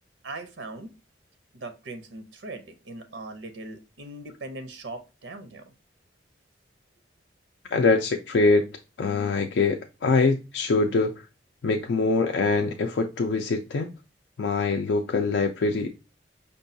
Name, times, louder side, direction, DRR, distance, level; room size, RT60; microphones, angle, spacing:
voice 1, 0.2-0.9 1.5-5.7, right 2 dB, 85° right, 0.6 m, -40 dB
voice 2, 7.7-8.7 9.0-11.1 11.6-13.9 14.4-15.9, left 3 dB, 70° left, 0.4 m, -23 dB
5.2 x 2.3 x 2.6 m
head